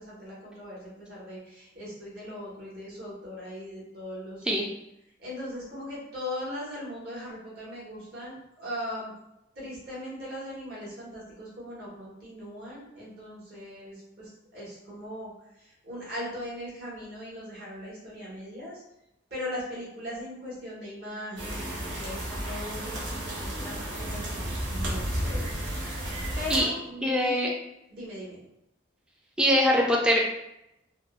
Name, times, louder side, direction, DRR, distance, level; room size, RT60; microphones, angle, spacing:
voice 1, 0.0-4.5 5.2-9.1 9.5-18.8 19.3-25.6 26.3-27.4 27.9-28.4, left 1 dB, 55° right, -6 dB, 1.2 m, -39 dB
sound 1, 21.4-26.6, right 1 dB, 85° right, 0.8 m, -32 dB
voice 2, 27.0-27.5 29.4-30.2, equal, 5° right, -2 dB, 0.3 m, -23 dB
3.4 x 2.0 x 2.3 m, 0.85 s
head